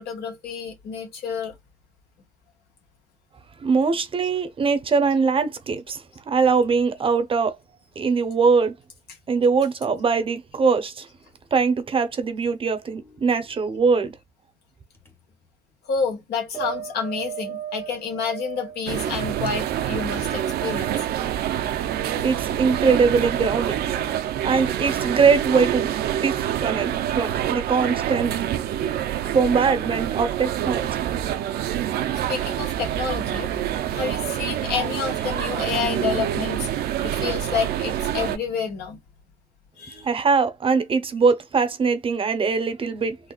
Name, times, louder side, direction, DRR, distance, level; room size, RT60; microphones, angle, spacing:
voice 1, 0.0-1.6 15.8-21.1 32.1-33.5 33.9-39.0 39.8-40.1, left 6 dB, 70° left, 1.6 m, -29 dB
voice 2, 3.6-7.6 8.0-8.7 9.3-11.1 11.5-14.1 22.2-23.8 24.4-25.9 26.2-28.3 29.3-31.0 40.0-43.2, right 5 dB, 30° right, 0.8 m, -22 dB
sound 1, 12.9-13.3 15.0-15.1 16.5-20.9 21.6-21.8, right 10 dB, 15° left, 0.9 m, -37 dB
sound 2, 18.9-38.4, right 11 dB, 70° right, 0.6 m, -26 dB
4.0 x 2.3 x 2.3 m
cardioid pair, 110°, 17 cm